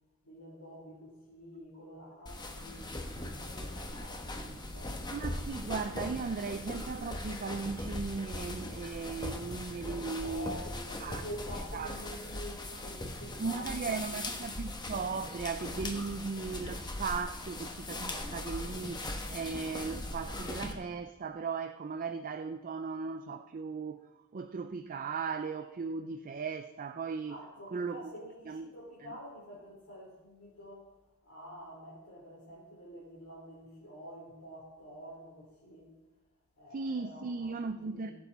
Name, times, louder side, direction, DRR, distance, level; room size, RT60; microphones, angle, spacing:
voice 1, 0.2-3.0 3.3-5.0 9.9-14.6 27.3-30.9 31.2-35.9 36.6-38.1, equal, 85° left, -6 dB, 3.6 m, -48 dB
sound 1, 2.3-20.7, left 1 dB, 20° left, 1.1 m, -40 dB
voice 2, 5.1-10.6 11.0-11.2 11.7-11.9 13.4-24.0 24.3-27.4 27.7-28.0 28.5-28.7 29.0-29.1 36.7-38.1, right 5 dB, 40° right, 8 dB, 0.4 m, -37 dB
16.0 x 8.0 x 4.1 m, 1.1 s
head